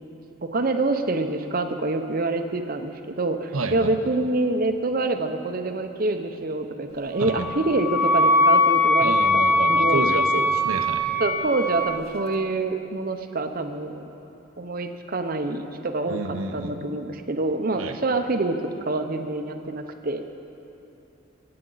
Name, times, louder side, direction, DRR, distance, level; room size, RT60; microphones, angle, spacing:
voice 1, 0.5-10.0 11.2-14.0 14.6-18.6 18.9-20.2, right 2 dB, 45° right, 6 dB, 0.7 m, -26 dB
voice 2, 3.5-4.0 7.2-7.4 9.0-11.1 16.1-16.9 17.8-18.0, right 3 dB, 85° right, 6 dB, 0.8 m, -29 dB
Wind instrument woodwind instrument, 7.3-12.0, left 1 dB, 50° left, 1.0 m, -21 dB
24.0 x 8.7 x 4.0 m, 3.0 s
head